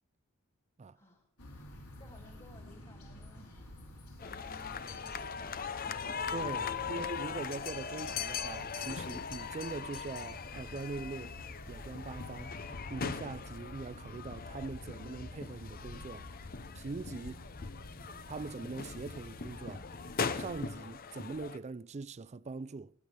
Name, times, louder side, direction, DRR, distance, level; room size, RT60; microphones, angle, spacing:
voice 1, 0.9-1.3 2.0-3.7 4.1-6.3 6.6-6.8 18.0-18.2, left 1 dB, 25° left, 2.3 m, -56 dB
sound 1, 1.4-20.7, left 1 dB, 85° left, 3.8 m, -50 dB
sound 2, 4.2-21.6, left 6 dB, 40° left, 0.7 m, -40 dB
voice 2, 6.3-11.4 11.7-12.6 12.9-16.3 16.7-17.5 18.3-19.9 20.3-22.9, right 3 dB, 30° right, 0.4 m, -42 dB
22.5 x 8.4 x 3.4 m
head